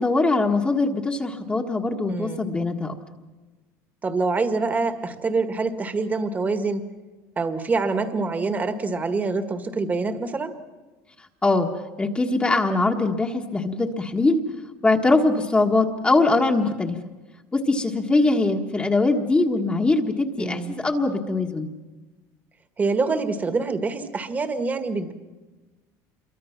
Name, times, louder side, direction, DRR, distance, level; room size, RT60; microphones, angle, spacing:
voice 1, 0.0-2.9 11.4-11.7 12.0-14.4 14.8-17.0 17.5-21.7, left 3 dB, 15° left, 2 dB, 1.5 m, -22 dB
voice 2, 2.1-2.5 4.0-6.8 7.4-10.5 20.4-20.7 22.8-25.1, right 3 dB, 20° right, 8 dB, 1.8 m, -25 dB
27.5 x 23.0 x 5.9 m, 1.2 s
cardioid pair, 135°, 8 cm